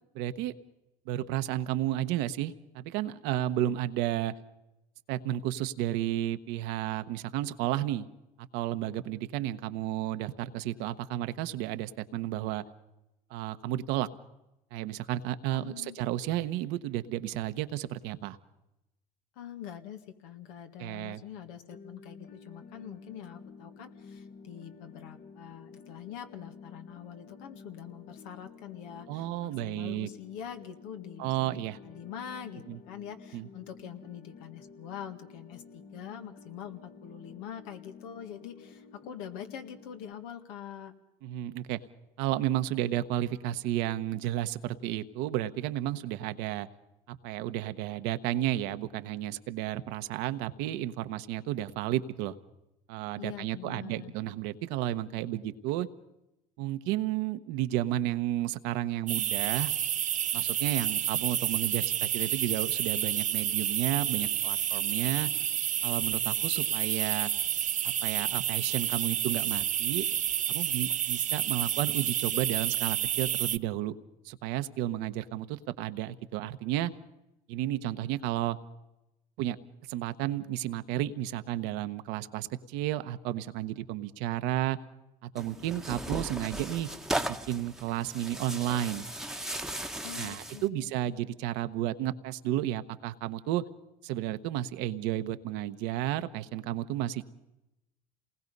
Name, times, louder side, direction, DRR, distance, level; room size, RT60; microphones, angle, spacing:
voice 1, 0.1-0.5 1.1-4.3 5.1-8.1 8.5-12.6 13.3-14.1 14.7-18.4 20.8-21.2 29.1-30.1 31.2-31.8 32.7-32.8 33.3-33.5 41.2-41.8 42.2-46.7 47.1-52.3 52.9-55.9 56.6-59.7 60.3-65.3 65.8-67.3 67.8-70.0 70.5-73.9 74.2-76.9 77.5-78.6 79.4-79.6 79.9-84.8 85.2-86.9 87.2-89.0 90.2-93.6 94.0-97.2, right 13 dB, 75° right, 10 dB, 1.1 m, -32 dB
voice 2, 15.5-16.0 19.4-40.9 53.1-54.1 90.0-90.9, left 9 dB, 80° left, 6 dB, 1.9 m, -44 dB
sound 1, 21.7-40.1, left 4 dB, 50° left, 1.3 m, -51 dB
sound 2, 59.1-73.6, right 10 dB, 45° right, 0.7 m, -30 dB
Tearing, 85.4-90.7, right 1 dB, 5° right, 1.1 m, -37 dB
28.0 x 19.5 x 5.4 m, 0.94 s
supercardioid pair, 80°, 18 cm